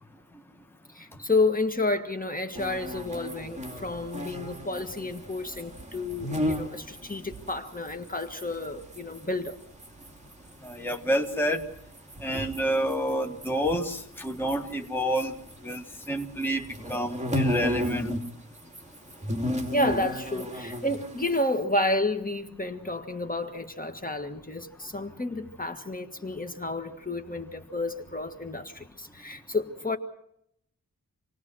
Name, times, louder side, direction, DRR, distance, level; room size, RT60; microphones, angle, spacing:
voice 1, 0.9-9.6 19.7-30.0, left 2 dB, 25° left, 1.7 m, -30 dB
sound 1, 2.6-9.5 9.8-15.8 16.0-18.3 18.6-21.4, left 1 dB, 20° right, 2.6 m, -33 dB
voice 2, 10.6-11.6 12.2-15.3 15.6-16.6 16.9-18.1, equal, 5° left, 1.6 m, -28 dB
28.0 x 19.0 x 6.4 m
wide cardioid pair, 115°, 35 cm